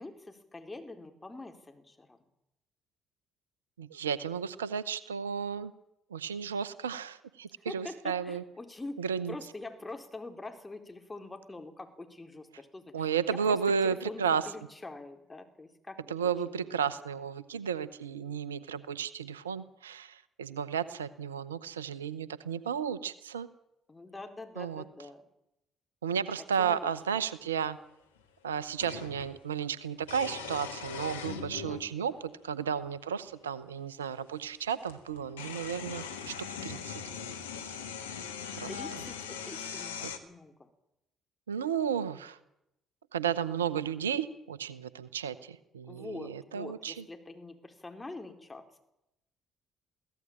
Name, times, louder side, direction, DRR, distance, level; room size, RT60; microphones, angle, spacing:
voice 1, 0.0-2.2 7.7-13.6 13.8-16.1 16.5-16.6 23.9-25.2 26.4-26.9 31.5-31.8 38.7-40.7 45.9-48.8, left 2 dB, 20° left, 5 dB, 4.4 m, -45 dB
voice 2, 3.8-5.7 6.1-8.4 9.0-9.3 12.9-14.4 16.1-23.5 24.6-24.8 26.0-27.8 28.4-32.1 32.4-36.3 36.6-37.0 38.5-38.7 41.5-42.4 43.1-46.9, right 7 dB, 90° right, 16 dB, 0.8 m, -33 dB
sound 1, 27.1-27.2 28.8-29.3 30.0-31.9 32.8-32.9 34.4-34.5 34.8-40.2, left 7 dB, 90° left, 1.8 m, -40 dB
23.0 x 16.5 x 8.9 m, 0.85 s
hypercardioid pair, 50°, 0 cm